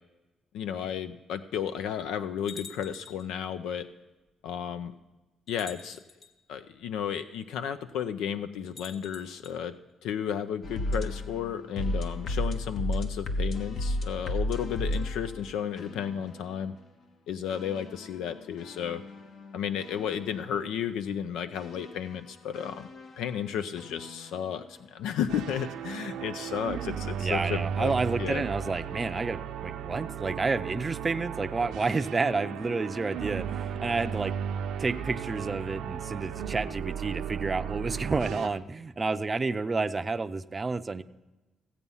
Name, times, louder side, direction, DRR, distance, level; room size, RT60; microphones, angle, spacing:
voice 1, 0.5-3.9 4.4-4.9 5.5-6.0 6.5-9.7 10.0-16.7 17.3-19.0 19.5-22.9 23.2-27.9 28.2-28.4, left 8 dB, 90° left, 10 dB, 0.5 m, -33 dB
sound 1, 2.5-3.3 4.5-4.6 5.5-6.3 8.7-9.6, left 5 dB, 45° left, 1.4 m, -47 dB
sound 2, 10.6-16.6 17.5-20.7 21.5-24.6 25.5-25.7, left 1 dB, 65° left, 1.2 m, -35 dB
sound 3, 25.3-38.5, right 8 dB, 85° right, 0.7 m, -35 dB
voice 2, 27.2-34.3 34.8-41.0, right 3 dB, 25° right, 10 dB, 0.5 m, -30 dB
15.5 x 8.2 x 5.5 m, 1.1 s
cardioid pair, 90°, 0 cm